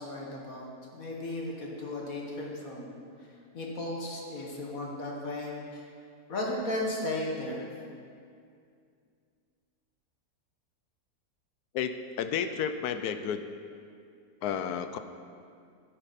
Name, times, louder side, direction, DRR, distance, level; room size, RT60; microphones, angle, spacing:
voice 1, 0.0-3.0 3.5-5.8 6.3-7.7, left 1 dB, 60° left, -2 dB, 2.0 m, -35 dB
voice 2, 11.7-13.5 14.4-15.0, left 8 dB, 80° left, 9 dB, 1.1 m, -32 dB
12.5 x 10.0 x 4.2 m, 2.3 s
omnidirectional pair, 1.7 m